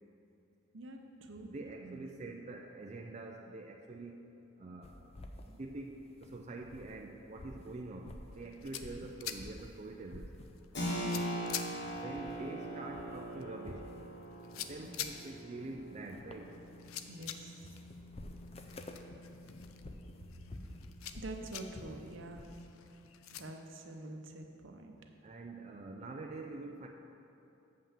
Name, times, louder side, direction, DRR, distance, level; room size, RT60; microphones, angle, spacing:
voice 1, 0.7-1.5 1.8-2.0 10.8-11.3 14.8-14.9 17.1-17.7 21.2-22.4 23.3-25.0, right 2 dB, 65° right, 4 dB, 0.8 m, -47 dB
voice 2, 1.4-4.2 4.6-5.0 5.5-10.3 11.1-11.3 11.9-13.8 14.6-16.5 25.2-26.9, right 2 dB, 35° right, 1 dB, 0.4 m, -45 dB
sound 1, 4.8-7.0 7.3-9.8 10.1-11.1 11.4-12.6 12.8-22.6, left 1 dB, 30° left, 0.5 m, -51 dB
sound 2, 8.3-23.4, left 9 dB, 90° left, 0.5 m, -48 dB
Keyboard (musical), 10.7-21.1, equal, 55° left, 1.2 m, -43 dB
7.6 x 5.6 x 7.1 m, 2.8 s
head